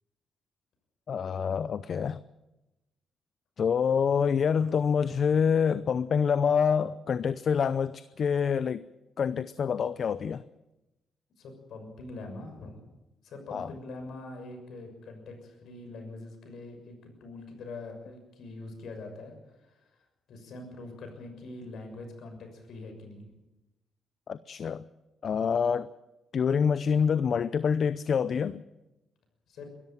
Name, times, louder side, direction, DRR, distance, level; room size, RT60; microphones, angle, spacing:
voice 1, 1.1-2.2 3.6-8.8 9.2-10.4 13.5-13.7 24.3-24.8 25.2-25.9 26.3-28.6, left 7 dB, 55° left, 15 dB, 0.6 m, -26 dB
voice 2, 11.4-12.9 13.2-23.3 29.5-29.7, left 2 dB, 70° left, 5 dB, 6.5 m, -44 dB
23.0 x 13.5 x 9.0 m, 1.0 s
cardioid pair, 95°, 0 cm